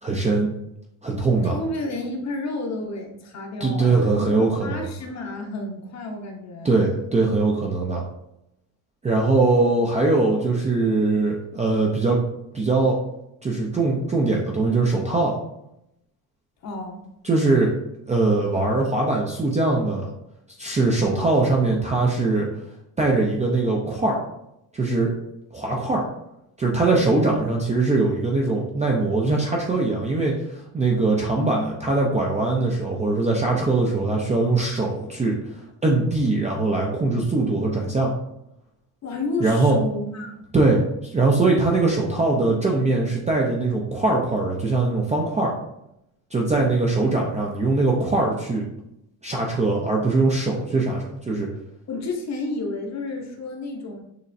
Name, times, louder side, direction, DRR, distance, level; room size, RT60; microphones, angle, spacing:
voice 1, 0.0-0.5 1.0-1.6 3.6-4.9 6.6-8.0 9.0-12.2 12.5-13.0 13.4-15.3 17.2-17.7 18.1-20.1 20.6-22.5 23.0-24.2 24.7-25.1 25.5-26.1 26.6-35.4 35.8-38.1 39.4-39.8 40.5-45.5 46.3-48.6 49.2-51.5, right 3 dB, 15° right, -2 dB, 0.4 m, -21 dB
voice 2, 1.4-6.8 16.6-17.0 31.4-31.7 39.0-40.4 51.9-54.0, left 2 dB, 35° left, 3 dB, 0.8 m, -31 dB
6.6 x 3.0 x 2.6 m, 0.82 s
cardioid pair, 150°, 45 cm